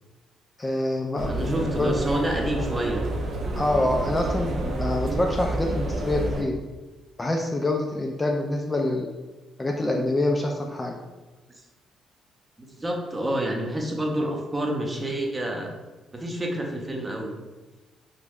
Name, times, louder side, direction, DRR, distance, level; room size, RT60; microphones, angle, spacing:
voice 1, 0.6-2.0 3.6-6.6 7.2-9.1 9.6-11.0, left 1 dB, 20° left, 1 dB, 0.3 m, -26 dB
voice 2, 1.2-3.0 6.2-6.3 12.6-15.7 16.1-17.3, right 1 dB, 20° right, 0 dB, 0.6 m, -28 dB
sound 1, 1.2-6.4, right 1 dB, 65° right, 0.5 m, -29 dB
3.0 x 2.2 x 3.5 m, 1.2 s
cardioid pair, 90°, 0 cm